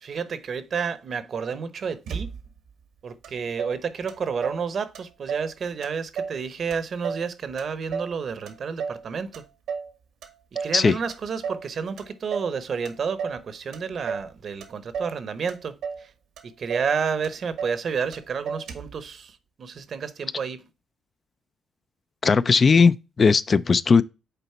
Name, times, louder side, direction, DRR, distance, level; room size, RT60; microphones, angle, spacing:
voice 1, 0.0-2.3 3.0-9.4 10.6-16.1 16.4-20.6, right 6 dB, 55° right, 0.8 m, -30 dB
Motor vehicle (road), 2.1-2.7 3.2-3.3 3.6-4.7 4.9-5.5 5.8-6.4 6.7-8.2 8.5-9.1 9.3-9.9 10.2-10.8 11.1-11.7 12.0-12.6 12.9-13.4 13.7-14.3 14.6-15.2 15.5-16.1 16.4-16.5 16.7-16.9 17.2-17.8 18.1-18.2 18.5-19.0, right 6 dB, 80° right, 1.3 m, -33 dB
voice 2, 22.2-24.0, left 5 dB, 40° left, 0.3 m, -18 dB
6.8 x 4.2 x 4.4 m
cardioid pair, 90°, 0 cm